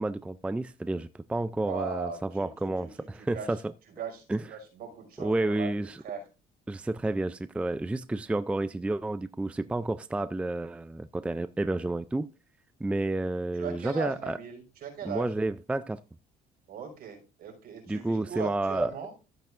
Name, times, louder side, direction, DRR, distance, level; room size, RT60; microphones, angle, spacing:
voice 1, 0.0-3.7 4.3-4.4 5.2-6.0 6.7-12.3 12.8-14.4 15.0-16.0 17.9-18.9, right 2 dB, 5° right, 0.4 m, -30 dB
voice 2, 1.7-3.5 4.0-6.2 13.5-15.3 16.7-19.1, right 6 dB, 65° right, 5.6 m, -39 dB
15.0 x 8.0 x 2.6 m
cardioid pair, 110°, 17 cm